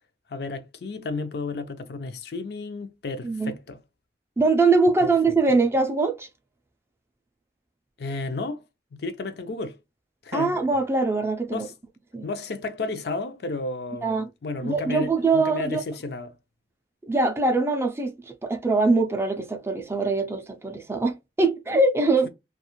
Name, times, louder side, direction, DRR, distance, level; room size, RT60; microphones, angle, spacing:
voice 1, 0.3-3.8 5.0-5.1 8.0-8.6 8.9-9.8 10.2-10.5 11.5-11.7 12.2-14.1 14.4-16.4, left 3 dB, 65° left, 0.4 m, -32 dB
voice 2, 4.4-6.3 10.3-11.7 12.1-12.3 14.0-14.3 14.6-15.8 17.0-22.3, right 3 dB, 15° right, 0.3 m, -23 dB
2.4 x 2.2 x 2.9 m
head